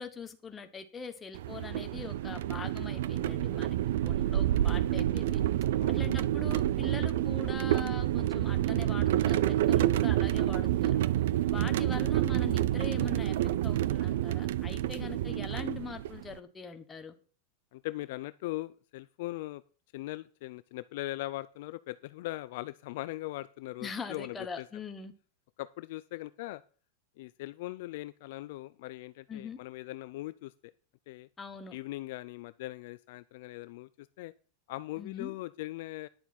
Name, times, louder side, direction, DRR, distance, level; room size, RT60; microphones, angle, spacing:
voice 1, 0.0-3.8 4.0-5.4 5.9-11.0 11.5-13.3 13.6-17.1 23.8-25.1 29.3-29.6 31.4-31.8 35.0-35.3, left 5 dB, 10° left, 6 dB, 1.2 m, -42 dB
sound 1, 1.3-16.3, right 13 dB, 65° right, 0.5 m, -28 dB
voice 2, 17.7-19.6 19.9-24.7 25.6-26.6 27.2-30.7 31.1-31.3 31.7-34.3 34.7-36.1, left 17 dB, 50° left, 15 dB, 0.5 m, -40 dB
10.5 x 7.0 x 6.0 m, 0.39 s
supercardioid pair, 170°, 0 cm